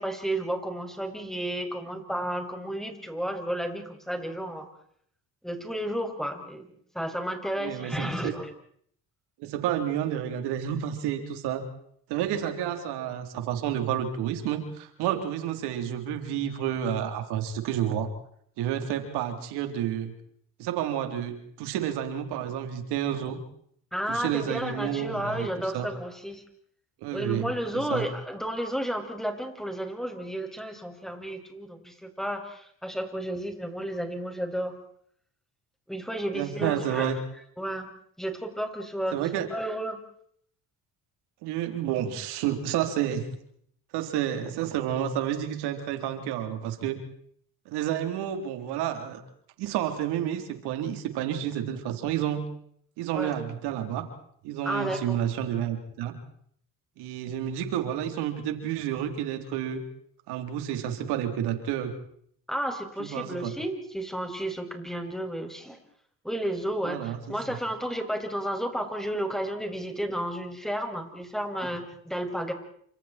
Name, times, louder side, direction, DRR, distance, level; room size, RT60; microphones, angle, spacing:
voice 1, 0.0-4.7 5.4-6.7 6.9-8.5 15.0-15.2 23.9-26.4 27.1-34.8 35.9-37.1 37.6-37.9 38.2-39.2 39.5-40.0 53.1-53.3 54.6-55.2 62.5-65.8 66.2-72.5, right 1 dB, ahead, 4 dB, 6.7 m, -32 dB
voice 2, 7.6-8.4 9.4-11.6 12.1-18.1 18.6-20.1 20.6-23.4 24.1-25.9 27.0-28.1 36.3-37.2 39.1-39.5 41.4-43.3 43.9-47.0 47.7-49.2 49.6-52.5 53.0-54.1 54.4-56.1 57.0-59.8 60.3-61.9 63.0-63.6 66.8-67.6, right 10 dB, 85° right, 6 dB, 4.0 m, -30 dB
29.5 x 26.5 x 4.6 m, 0.65 s
supercardioid pair, 70°, 39 cm